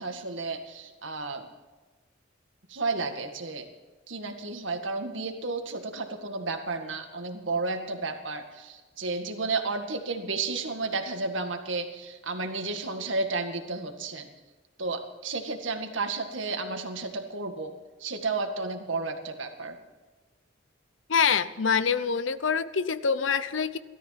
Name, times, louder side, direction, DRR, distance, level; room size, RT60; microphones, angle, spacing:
voice 1, 0.0-1.5 2.7-3.7 4.1-14.3 14.8-17.7 18.0-19.8, right 3 dB, 75° right, 5 dB, 1.9 m, -32 dB
voice 2, 21.1-23.8, left 6 dB, 75° left, 14 dB, 0.8 m, -25 dB
17.0 x 13.0 x 5.9 m, 1.3 s
head